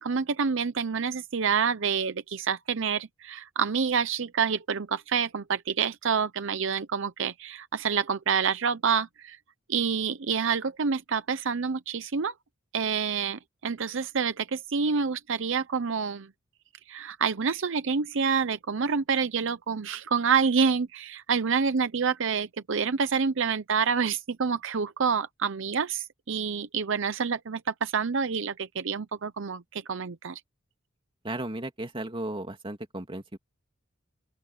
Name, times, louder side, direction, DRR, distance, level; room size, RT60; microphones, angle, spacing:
voice 1, 0.0-9.4 9.7-12.3 12.7-16.3 16.9-30.4, right 6 dB, 65° right, 0.7 m, -27 dB
voice 2, 31.2-33.4, right 1 dB, 25° right, 2.7 m, -35 dB
open air
head